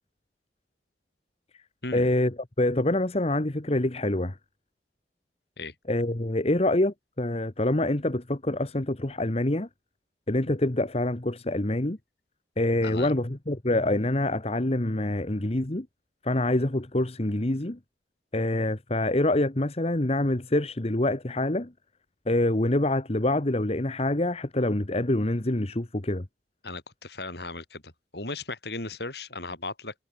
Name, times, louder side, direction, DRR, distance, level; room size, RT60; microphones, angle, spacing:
voice 1, 1.9-4.4 5.9-9.7 10.3-12.0 12.6-15.9 16.2-17.8 18.3-21.7 22.3-26.3, left 1 dB, 35° left, 1.3 m, -26 dB
voice 2, 26.6-29.9, left 2 dB, 65° left, 5.8 m, -36 dB
head